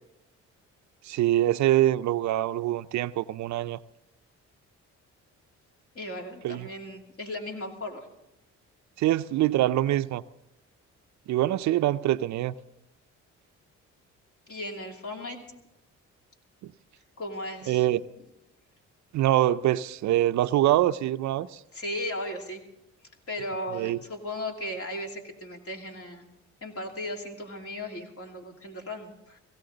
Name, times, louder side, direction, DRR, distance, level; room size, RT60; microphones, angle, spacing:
voice 1, 1.0-3.8 6.4-6.7 9.0-10.2 11.3-12.5 16.6-16.7 17.7-18.0 19.1-21.6 23.7-24.0, right 14 dB, 70° right, 0.5 m, -24 dB
voice 2, 5.9-8.1 14.5-15.4 17.2-17.8 21.7-22.6 23.3-26.3 26.6-29.4, left 1 dB, 50° left, 2.7 m, -36 dB
17.0 x 16.5 x 3.9 m
cardioid pair, 90°, 30 cm